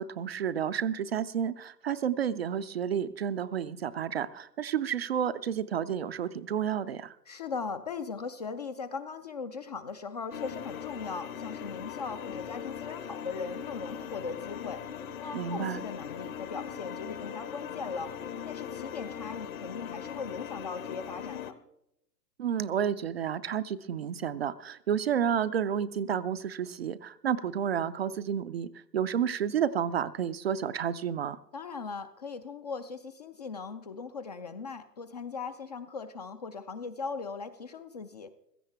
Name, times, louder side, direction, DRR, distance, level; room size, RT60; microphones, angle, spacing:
voice 1, 0.0-7.2 15.3-15.8 22.4-31.4, right 8 dB, 40° right, 12 dB, 0.5 m, -31 dB
voice 2, 7.3-14.8 15.2-18.1 18.5-21.5 31.5-38.3, left 5 dB, 25° left, 10 dB, 0.4 m, -39 dB
sound 1, 10.3-21.5, left 8 dB, 55° left, 1.4 m, -40 dB
16.0 x 14.0 x 3.4 m, 0.77 s
figure-of-eight pair, 115°, 50 cm